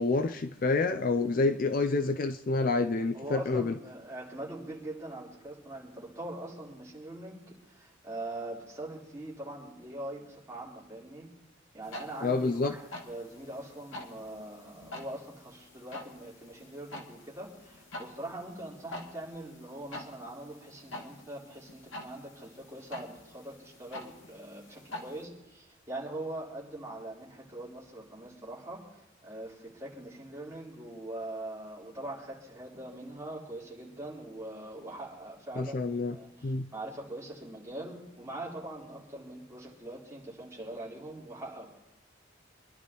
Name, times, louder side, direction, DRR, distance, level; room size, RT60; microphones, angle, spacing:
voice 1, 0.0-3.8 12.2-12.7 35.6-36.2 36.4-36.7, left 3 dB, 45° left, 9 dB, 0.5 m, -28 dB
voice 2, 3.1-11.3 11.7-41.7, right 1 dB, 15° right, -6 dB, 3.9 m, -42 dB
sound 1, 11.8-25.2, left 2 dB, 80° left, 2.2 m, -47 dB
26.5 x 11.5 x 3.0 m, 0.90 s
head